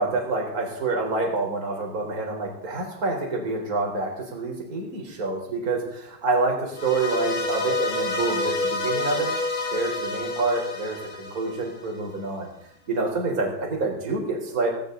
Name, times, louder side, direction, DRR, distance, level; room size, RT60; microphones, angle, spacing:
voice 1, 0.0-9.3 9.7-12.5 12.9-14.7, right 3 dB, 20° right, 1 dB, 3.9 m, -27 dB
sound 1, 6.7-12.0, left 2 dB, 35° left, 2.8 m, -28 dB
17.5 x 17.5 x 3.9 m, 0.73 s
omnidirectional pair, 5.2 m